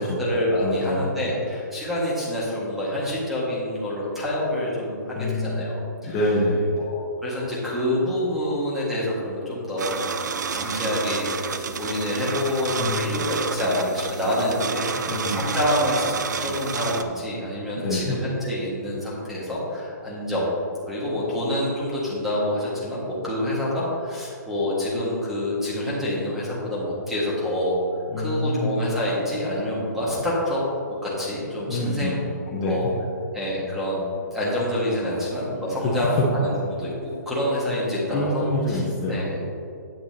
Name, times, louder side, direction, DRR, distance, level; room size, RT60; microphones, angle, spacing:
voice 1, 0.0-6.2 6.7-10.0 10.5-16.0 16.4-20.5 20.9-27.8 28.2-30.6 30.9-32.2 32.5-32.9 33.3-34.0 34.3-38.8 39.1-39.3, left 1 dB, ahead, -8 dB, 1.7 m, -27 dB
voice 2, 0.6-1.0 5.2-5.7 6.0-6.6 12.8-13.2 15.1-15.5 17.8-18.2 28.1-28.7 31.7-32.2 32.5-32.9 35.8-36.0 38.1-39.4, left 1 dB, 25° left, -5 dB, 1.0 m, -26 dB
sound 1, 9.8-17.0, right 6 dB, 70° right, 0.6 m, -30 dB
9.3 x 8.9 x 2.8 m, 2.6 s
hypercardioid pair, 165°, 10 cm